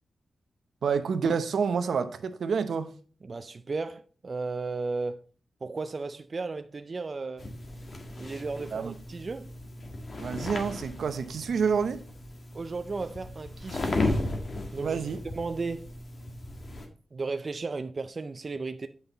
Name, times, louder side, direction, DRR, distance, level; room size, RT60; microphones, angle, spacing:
voice 1, 0.8-2.9 8.7-8.9 10.2-12.0 14.8-15.2, right 6 dB, 75° right, 0.7 m, -28 dB
voice 2, 3.2-5.2 5.6-7.5 8.2-9.5 12.5-14.2 14.7-15.0 15.3-15.9 17.1-18.9, right 3 dB, 40° right, 0.4 m, -35 dB
sound 1, 7.4-16.9, left 2 dB, 50° left, 1.5 m, -35 dB
8.0 x 5.6 x 3.9 m
cardioid pair, 90°, 0 cm